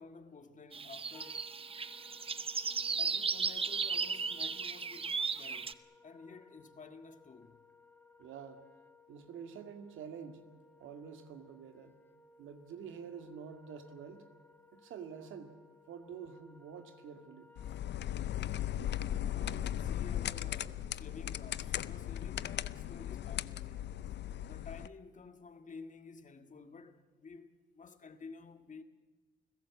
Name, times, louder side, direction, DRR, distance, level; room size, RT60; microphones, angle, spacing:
voice 1, 0.0-1.6 3.0-7.6 17.7-17.8 19.3-24.1 24.4-28.8, left 4 dB, 40° left, 1.7 m, -52 dB
sound 1, 0.7-5.7, right 5 dB, 30° right, 0.8 m, -35 dB
Wind instrument woodwind instrument, 1.1-19.2, left 4 dB, 10° left, 1.4 m, -62 dB
voice 2, 8.2-8.6 9.1-10.4 10.8-12.0 12.4-14.3 14.7-15.5 15.9-17.5, right 7 dB, 80° right, 2.2 m, -47 dB
sound 2, 17.6-24.9, left 11 dB, 60° left, 0.6 m, -37 dB
29.5 x 16.5 x 7.2 m
cardioid pair, 90°, 20 cm